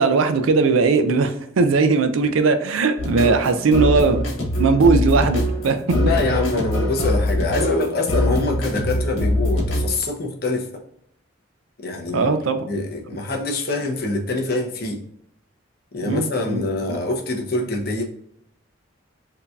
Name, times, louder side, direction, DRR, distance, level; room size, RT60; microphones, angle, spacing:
voice 1, 0.0-4.2 4.6-5.8 12.1-12.7 16.0-16.6, right 4 dB, 85° right, 0.4 m, -18 dB
sound 1, 3.0-9.9, left 1 dB, 80° left, 1.3 m, -23 dB
voice 2, 5.9-10.7 11.8-12.3 12.7-15.0 15.9-18.0, left 2 dB, 50° left, 0.7 m, -25 dB
3.7 x 2.8 x 2.3 m
head